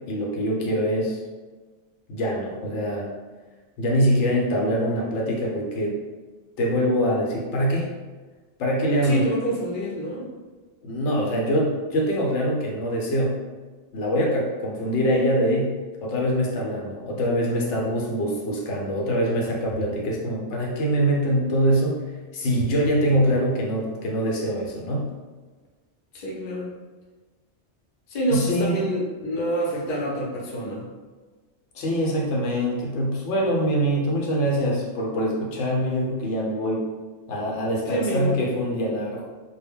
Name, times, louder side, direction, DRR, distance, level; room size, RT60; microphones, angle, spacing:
voice 1, 0.1-1.2 2.1-3.1 3.8-6.0 6.6-7.9 8.6-9.2 10.8-13.4 13.9-15.7 16.0-22.0 22.3-25.1 28.3-28.8 31.7-36.9 37.3-39.2, equal, 80° left, -2 dB, 0.9 m, -24 dB
voice 2, 9.0-10.3 26.1-26.7 28.1-30.8 37.9-38.4, right 1 dB, 50° left, -4 dB, 0.7 m, -27 dB
2.1 x 2.1 x 3.4 m, 1.3 s
omnidirectional pair, 1.2 m